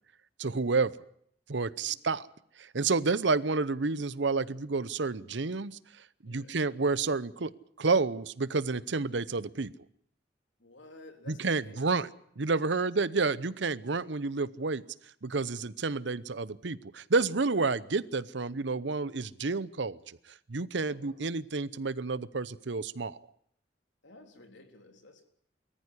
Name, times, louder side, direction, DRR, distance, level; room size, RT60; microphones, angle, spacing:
voice 1, 0.4-0.9 1.5-2.3 2.6-5.8 6.2-7.5 7.8-9.7 11.3-12.1 12.4-14.8 15.2-20.2 20.5-23.2, right 4 dB, 75° right, 19 dB, 0.8 m, -30 dB
voice 2, 6.2-6.6 10.6-11.9 12.7-12.9 19.6-19.7 20.8-21.2 24.0-25.3, left 2 dB, 80° left, 5 dB, 3.7 m, -53 dB
23.0 x 14.5 x 9.8 m, 0.67 s
head